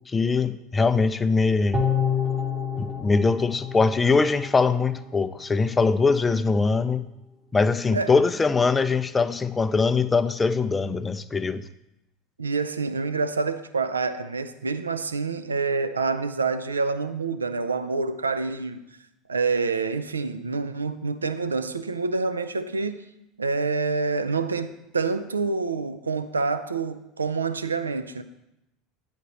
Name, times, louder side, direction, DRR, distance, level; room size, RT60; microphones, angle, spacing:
voice 1, 0.1-1.8 2.8-7.1 7.5-11.6, left 4 dB, 20° left, 0.4 m, -22 dB
sound 1, 1.7-5.1 5.4-5.5, left 7 dB, 15° right, 0.8 m, -28 dB
voice 2, 12.4-18.8 19.3-23.1 23.4-28.2, right 4 dB, 80° right, 0.4 m, -27 dB
10.0 x 4.3 x 4.0 m
figure-of-eight pair, 70°, 0 cm